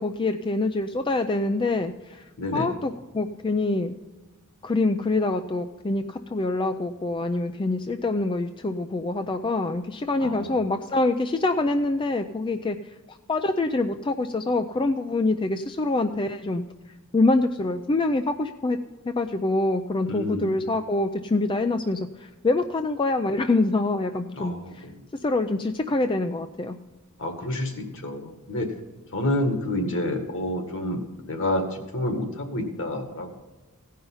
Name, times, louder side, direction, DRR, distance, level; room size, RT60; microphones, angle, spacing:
voice 1, 0.0-2.2 2.5-3.9 4.6-12.8 13.1-16.6 17.1-18.8 19.0-24.9 25.2-26.8, left 2 dB, 20° left, 7 dB, 0.4 m, -25 dB
voice 2, 2.4-2.7 10.2-10.5 20.1-20.5 24.4-24.7 27.2-28.7 29.1-31.0 31.3-33.3, left 1 dB, 60° left, 5 dB, 1.9 m, -28 dB
16.0 x 5.6 x 5.5 m, 1.2 s
head